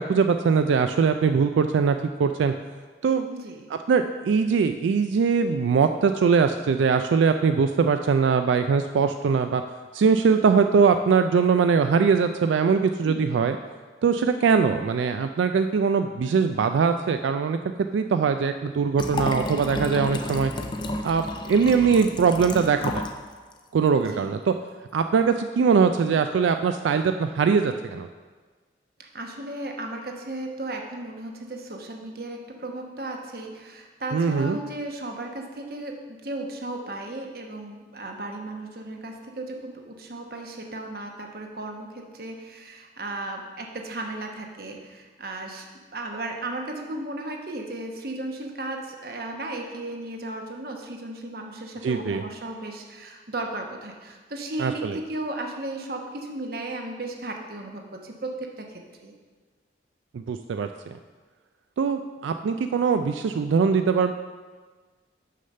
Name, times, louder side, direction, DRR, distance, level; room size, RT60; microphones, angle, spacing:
voice 1, 0.0-2.5 3.0-3.3 3.9-9.6 9.9-13.6 14.0-17.6 17.9-20.5 21.0-23.0 23.7-24.5 24.9-28.1 34.1-34.6 51.8-52.2 54.6-55.0 60.1-60.9 61.8-64.1, right 5 dB, 90° right, 8 dB, 0.3 m, -22 dB
voice 2, 3.3-3.7 24.1-24.3 29.0-45.7 45.9-59.1, right 2 dB, 55° right, 2 dB, 1.0 m, -35 dB
Liquid, 18.9-23.2 23.5-23.6, left 2 dB, 25° left, 0.5 m, -31 dB
6.5 x 5.6 x 6.5 m, 1.4 s
head